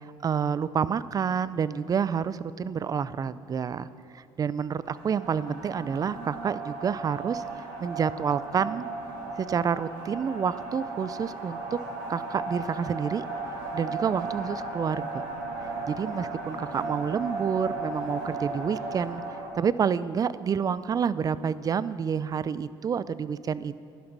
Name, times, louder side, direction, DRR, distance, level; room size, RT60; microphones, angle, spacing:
voice 1, 0.2-3.9 4.1-8.9 9.3-11.8 12.1-13.2 13.7-15.1 15.9-19.2 19.5-23.8, right 7 dB, 35° right, 17 dB, 0.5 m, -28 dB
sound 1, 4.8-19.5, right 3 dB, 90° right, 2.7 m, -36 dB
11.5 x 11.5 x 6.1 m, 2.4 s
supercardioid pair, 90°, 11 cm